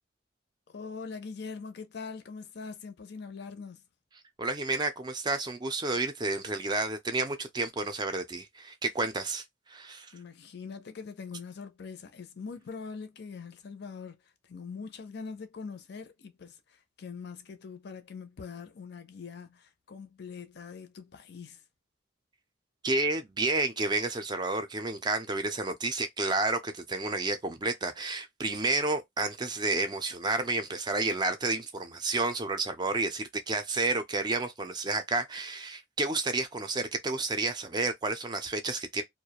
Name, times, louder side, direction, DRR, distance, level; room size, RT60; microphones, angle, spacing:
voice 1, 0.7-3.8 10.1-21.6, left 5 dB, 60° left, 0.5 m, -43 dB
voice 2, 4.4-10.1 22.8-39.0, right 3 dB, 25° right, 0.4 m, -30 dB
2.3 x 2.1 x 2.8 m
head